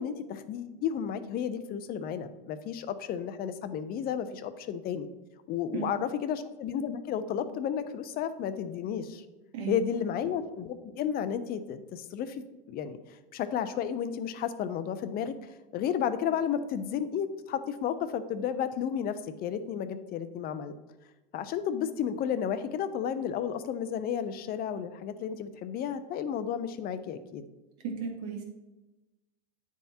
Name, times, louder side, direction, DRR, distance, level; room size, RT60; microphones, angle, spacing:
voice 1, 0.0-5.1 5.5-9.2 9.7-13.0 13.3-15.3 15.7-20.7 21.3-27.4, left 8 dB, 30° left, 11 dB, 0.5 m, -32 dB
voice 2, 9.5-10.0 27.8-28.4, right 6 dB, 50° right, 1 dB, 1.6 m, -35 dB
9.0 x 3.6 x 4.2 m, 1.1 s
supercardioid pair, 120°, 30 cm